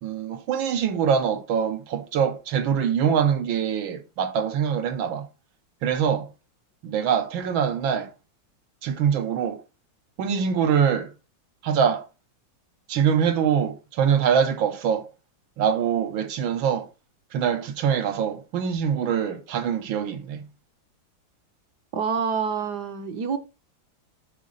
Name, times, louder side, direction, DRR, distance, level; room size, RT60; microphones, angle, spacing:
voice 1, 0.0-5.3 5.8-6.3 6.8-8.1 8.8-9.6 10.2-11.1 11.6-12.1 12.9-15.1 15.6-16.9 17.3-20.5, right 7 dB, 80° right, 1.7 m, -24 dB
voice 2, 21.9-23.4, right 6 dB, 65° right, 1.4 m, -27 dB
7.0 x 3.7 x 6.4 m
omnidirectional pair, 2.1 m